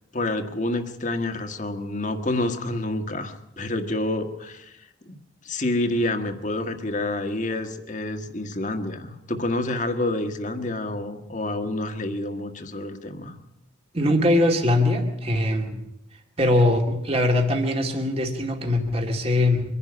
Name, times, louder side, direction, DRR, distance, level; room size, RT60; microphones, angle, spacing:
voice 1, 0.1-5.2 5.4-13.4, left 2 dB, 40° left, 7 dB, 1.5 m, -28 dB
voice 2, 13.9-15.8 16.4-19.6, left 1 dB, 30° right, 3 dB, 2.2 m, -21 dB
24.5 x 11.0 x 9.7 m, 0.87 s
head